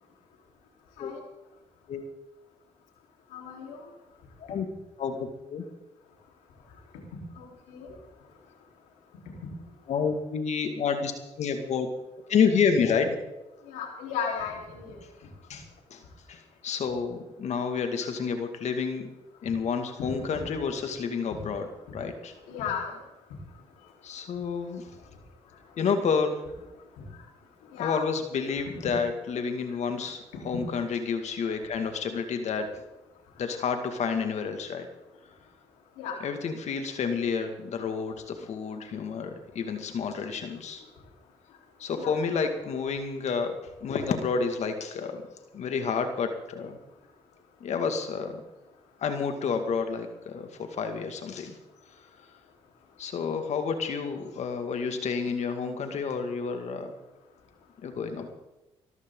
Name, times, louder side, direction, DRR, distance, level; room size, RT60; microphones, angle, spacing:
voice 1, 3.3-3.8 7.4-7.9 13.7-15.0 20.3-20.5 22.5-22.9 27.7-28.0 36.0-36.2 42.0-42.1, left 7 dB, 90° left, 0 dB, 4.0 m, -34 dB
voice 2, 5.0-5.6 9.9-11.1 11.4-11.9 12.3-13.2 15.5-15.6 15.9-16.0 16.3-19.1 19.4-21.7 21.9-22.3 24.0-24.8 25.8-26.4 27.8-32.7 33.4-34.9 36.2-40.8 41.8-45.2 45.5-46.8 47.6-48.4 49.0-51.6 53.0-56.9 57.8-58.3, left 5 dB, 65° left, 6 dB, 2.2 m, -29 dB
21.5 x 14.0 x 3.9 m, 0.99 s
supercardioid pair, 60°, 12 cm